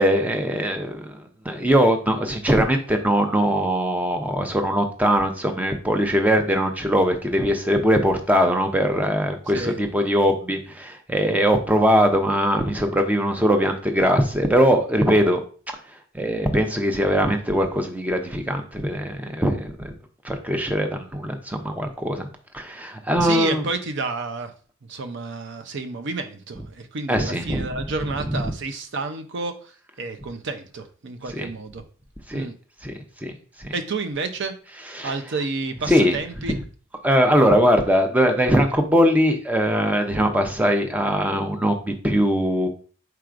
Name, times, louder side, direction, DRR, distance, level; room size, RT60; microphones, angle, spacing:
voice 1, 0.0-15.4 16.1-19.9 20.2-22.3 22.5-23.6 27.1-27.7 28.3-28.4 31.3-31.5 32.3-32.5 32.8-32.9 33.2-33.3 33.6-33.7 34.9-35.1 35.9-36.1 36.5-36.6 37.0-42.7, equal, 10° right, 5 dB, 0.6 m, -21 dB
voice 2, 23.2-24.5 24.9-31.8 32.3-32.5 33.7-34.5 35.0-36.6, right 3 dB, 60° right, 8 dB, 0.6 m, -30 dB
4.6 x 4.6 x 2.5 m, 0.41 s
head